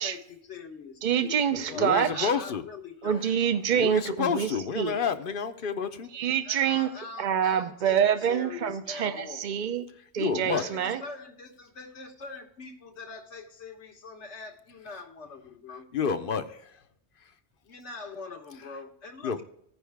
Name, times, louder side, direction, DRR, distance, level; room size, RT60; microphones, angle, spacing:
voice 1, 0.0-1.4 1.7-3.2 6.1-9.5 10.4-15.9 17.6-19.4, left 4 dB, 85° left, 4 dB, 1.5 m, -43 dB
voice 2, 1.0-2.3 3.0-5.1 6.1-6.9 7.2-9.8 10.1-11.0, right 8 dB, 50° right, 10 dB, 0.7 m, -26 dB
voice 3, 1.7-2.6 3.7-6.1 10.2-10.7 15.9-16.4 19.2-19.4, left 6 dB, 55° left, 9 dB, 0.8 m, -29 dB
16.5 x 5.5 x 3.4 m, 0.75 s
omnidirectional pair, 1.1 m